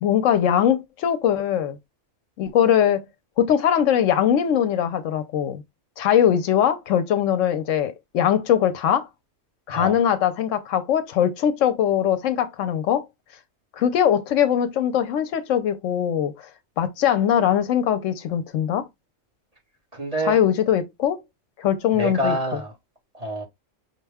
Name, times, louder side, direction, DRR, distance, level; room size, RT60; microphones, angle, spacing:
voice 1, 0.0-1.8 2.4-3.1 3.4-5.6 6.0-9.1 9.7-13.0 13.8-16.5 16.8-18.9 20.3-21.2 21.6-22.3, left 9 dB, 80° left, 1.0 m, -21 dB
voice 2, 19.9-20.3 21.9-22.7 23.1-23.4, right 1 dB, 30° right, 1.3 m, -27 dB
5.2 x 2.2 x 3.4 m
omnidirectional pair, 1.3 m